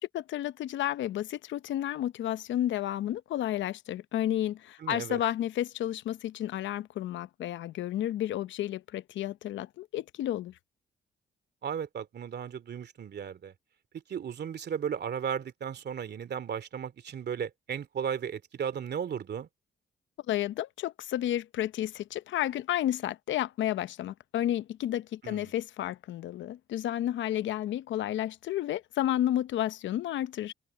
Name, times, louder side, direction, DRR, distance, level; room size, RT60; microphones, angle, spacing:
voice 1, 0.1-10.5 20.3-30.5, left 12 dB, 75° left, 0.8 m, -31 dB
voice 2, 4.8-5.2 11.6-13.5 14.1-19.5 25.2-25.5, right 8 dB, 60° right, 2.7 m, -35 dB
supercardioid pair, 65°, 20 cm